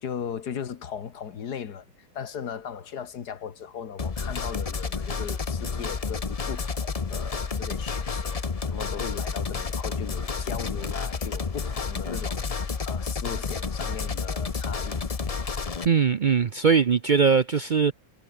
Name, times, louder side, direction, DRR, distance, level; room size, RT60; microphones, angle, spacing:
voice 1, 0.0-15.0, left 7 dB, 85° left, 2.1 m, -38 dB
sound 1, 4.0-15.9, left 5 dB, 30° left, 0.8 m, -30 dB
voice 2, 15.8-17.9, right 6 dB, 55° right, 0.5 m, -21 dB
omnidirectional pair, 1.7 m